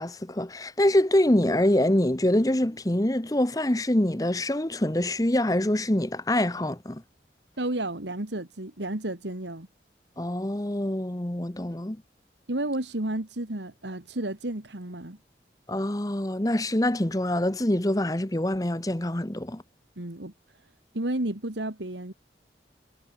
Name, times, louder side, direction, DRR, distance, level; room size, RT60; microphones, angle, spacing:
voice 1, 0.0-7.0 10.2-12.0 15.7-19.6, left 1 dB, 20° left, 1.0 m, -25 dB
voice 2, 7.6-9.7 12.5-15.2 20.0-22.1, right 1 dB, 90° right, 2.5 m, -32 dB
head